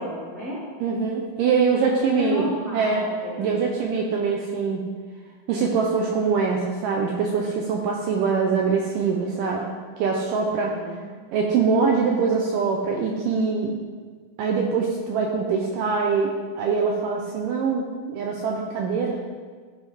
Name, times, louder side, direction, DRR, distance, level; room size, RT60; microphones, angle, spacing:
voice 1, 0.0-0.6 1.8-3.6 10.4-11.1, equal, 25° left, -10 dB, 1.4 m, -32 dB
voice 2, 0.8-3.1 3.4-4.9 5.5-9.7 10.0-10.7 11.3-13.8 14.4-19.2, right 5 dB, 80° right, 0 dB, 2.0 m, -23 dB
13.0 x 4.9 x 3.5 m, 1.5 s
omnidirectional pair, 4.4 m